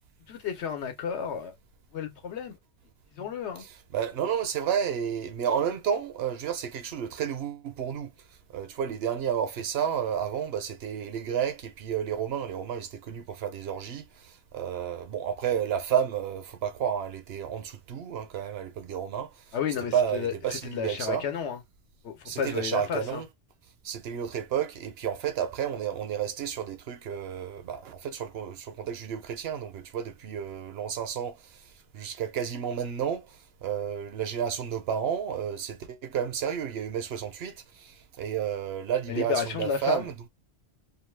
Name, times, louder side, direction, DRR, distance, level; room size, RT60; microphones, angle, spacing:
voice 1, 0.3-1.5 1.9-2.5 3.2-3.6 19.5-21.6 22.0-23.2 39.1-40.1, left 7 dB, 75° left, 1.1 m, -32 dB
voice 2, 3.6-8.1 8.5-19.6 19.9-21.3 22.2-23.3 23.8-40.2, right 8 dB, 65° right, 0.8 m, -31 dB
2.5 x 2.3 x 3.1 m
omnidirectional pair, 1.1 m